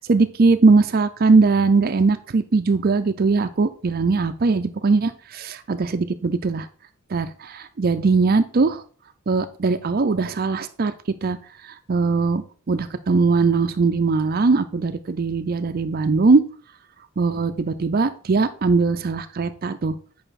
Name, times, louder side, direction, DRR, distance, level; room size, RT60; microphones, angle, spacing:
voice 1, 0.1-6.7 7.1-8.8 9.3-10.9 11.2-11.4 11.9-16.4 17.2-20.0, right 4 dB, 45° right, 10 dB, 0.5 m, -20 dB
8.9 x 5.5 x 4.1 m, 0.41 s
head